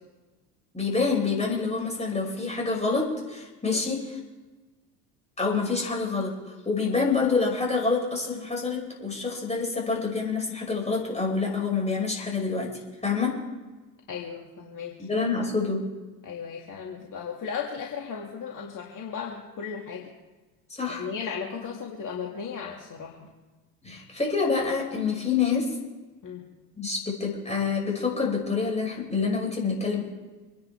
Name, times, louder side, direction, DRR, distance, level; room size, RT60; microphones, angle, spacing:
voice 1, 0.7-4.2 5.4-13.4 15.0-15.9 20.7-21.1 23.8-25.7 26.8-30.0, left 4 dB, 15° left, -2 dB, 6.0 m, -27 dB
voice 2, 14.1-15.0 16.2-20.1 20.9-23.3 26.2-26.5, left 6 dB, 40° left, -1 dB, 2.4 m, -36 dB
26.5 x 10.5 x 3.5 m, 1.2 s
hypercardioid pair, 70°, 48 cm